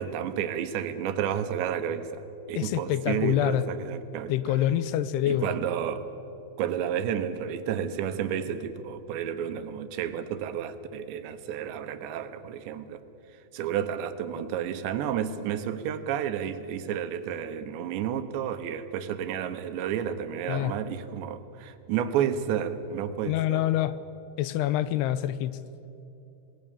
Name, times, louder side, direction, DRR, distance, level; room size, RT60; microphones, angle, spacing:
voice 1, 0.0-4.6 5.3-6.1 6.6-13.0 13.5-23.6, right 9 dB, 90° right, 10 dB, 3.4 m, -31 dB
voice 2, 2.6-3.7 4.3-5.5 20.5-20.8 23.3-24.0 24.4-25.6, left 12 dB, 80° left, 14 dB, 2.7 m, -26 dB
27.0 x 19.5 x 7.1 m, 2.9 s
omnidirectional pair, 4.9 m